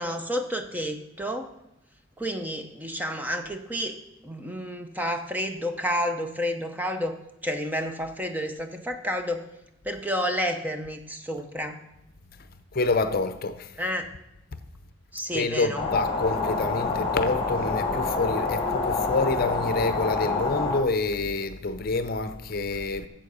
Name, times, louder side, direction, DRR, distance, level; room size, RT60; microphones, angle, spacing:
voice 1, 0.0-1.5 2.2-4.0 4.2-7.2 7.4-9.4 9.8-11.8 13.8-14.1 15.1-15.9, equal, 10° right, 0.7 m, -30 dB
voice 2, 12.7-13.7 15.3-23.1, left 3 dB, 50° left, 0.7 m, -27 dB
sound 1, 15.7-20.8, left 4 dB, 30° left, 1.4 m, -27 dB
11.5 x 7.5 x 5.4 m
head